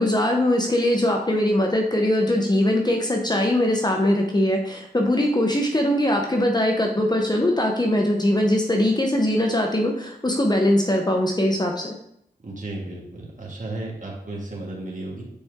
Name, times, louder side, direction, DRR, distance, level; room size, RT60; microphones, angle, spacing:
voice 1, 0.0-11.9, left 1 dB, 25° left, 1 dB, 0.9 m, -21 dB
voice 2, 12.4-15.2, right 2 dB, 50° right, -3 dB, 1.9 m, -34 dB
8.6 x 4.3 x 3.6 m, 0.76 s
wide cardioid pair, 70°, 17 cm